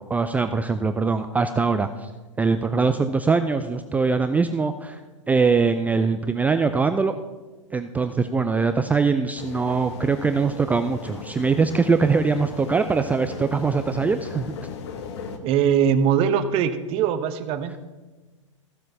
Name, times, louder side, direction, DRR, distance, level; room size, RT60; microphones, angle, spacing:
voice 1, 0.0-2.1 2.4-5.0 5.3-7.1 7.7-14.5, right 4 dB, 10° right, 9 dB, 0.4 m, -22 dB
sound 1, 9.4-15.4, left 6 dB, 55° left, 1.3 m, -37 dB
voice 2, 15.4-17.8, right 8 dB, 35° right, 11 dB, 1.0 m, -21 dB
14.5 x 7.5 x 5.5 m, 1.2 s
hypercardioid pair, 105°, 17 cm